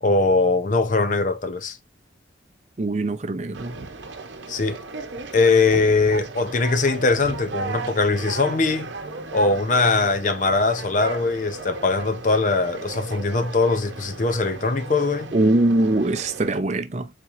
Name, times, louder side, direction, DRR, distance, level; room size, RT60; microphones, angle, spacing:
voice 1, 0.0-1.8 4.5-4.8 5.3-8.9 9.3-15.3, left 3 dB, 40° left, 0.6 m, -21 dB
voice 2, 2.8-3.8 15.3-17.1, right 2 dB, 35° right, 0.5 m, -22 dB
Conversation, 3.5-16.6, right 3 dB, 75° right, 0.8 m, -36 dB
4.2 x 3.6 x 2.9 m
head